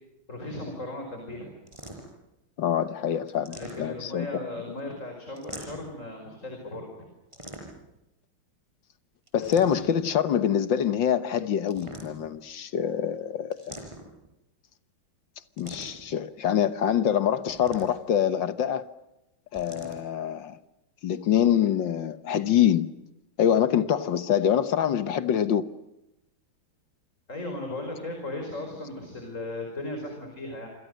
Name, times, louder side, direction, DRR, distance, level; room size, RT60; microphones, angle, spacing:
voice 1, 0.3-1.5 3.5-7.1 27.3-30.7, left 2 dB, 35° left, 5.4 m, -36 dB
sound 1, 1.7-2.3 3.3-4.2 5.4-6.0 7.3-8.0 9.3-10.0 11.6-12.4 13.5-14.3 15.6-16.1 17.5-18.2 19.5-20.0, right 1 dB, 15° right, 6.1 m, -43 dB
voice 2, 2.6-4.3 9.3-13.8 15.6-18.9 19.5-20.6 21.0-22.9 23.4-25.7, left 9 dB, 65° left, 1.7 m, -25 dB
27.5 x 27.0 x 6.5 m
omnidirectional pair, 2.3 m